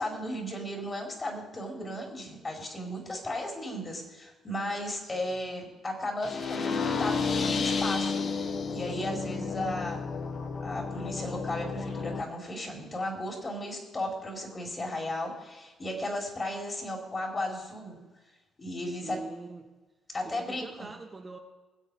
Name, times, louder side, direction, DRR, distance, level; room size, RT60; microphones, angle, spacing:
voice 1, 0.0-10.0 10.6-18.0 18.6-19.2 20.1-20.9, left 1 dB, 35° left, 2 dB, 4.3 m, -35 dB
voice 2, 5.0-5.4 18.9-19.7 20.2-21.4, right 3 dB, 30° right, 3 dB, 1.7 m, -44 dB
sound 1, 6.2-12.2, left 5 dB, 50° left, 1.3 m, -31 dB
20.5 x 7.9 x 4.9 m, 1.2 s
hypercardioid pair, 55°, 0 cm